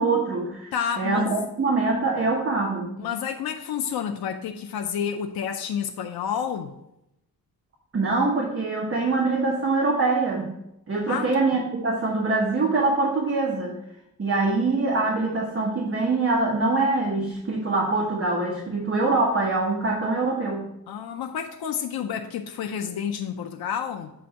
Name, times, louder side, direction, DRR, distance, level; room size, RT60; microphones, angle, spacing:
voice 1, 0.0-2.9 7.9-10.5 10.9-13.8 14.2-20.7, right 3 dB, 35° right, 1.1 m, -24 dB
voice 2, 0.7-1.3 3.0-6.7 11.1-11.3 20.9-24.1, left 8 dB, 80° left, 0.5 m, -30 dB
7.6 x 2.6 x 5.6 m
wide cardioid pair, 145°, 36 cm